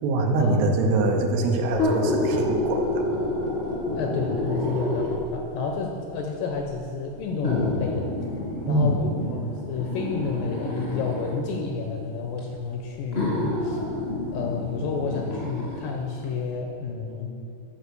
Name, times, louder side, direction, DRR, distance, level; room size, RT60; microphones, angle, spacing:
voice 1, 0.0-3.0 8.7-9.0, right 2 dB, 85° right, 2 dB, 3.0 m, -23 dB
sound 1, 1.7-5.4 6.3-6.4 7.4-11.4 12.4-12.5 13.1-15.8 16.2-16.3, left 2 dB, 45° left, 0.8 m, -28 dB
voice 2, 4.0-8.1 8.7-13.8 14.3-17.3, left 4 dB, 80° left, 2 dB, 2.0 m, -30 dB
11.5 x 4.5 x 6.9 m, 2.8 s
omnidirectional pair, 4.5 m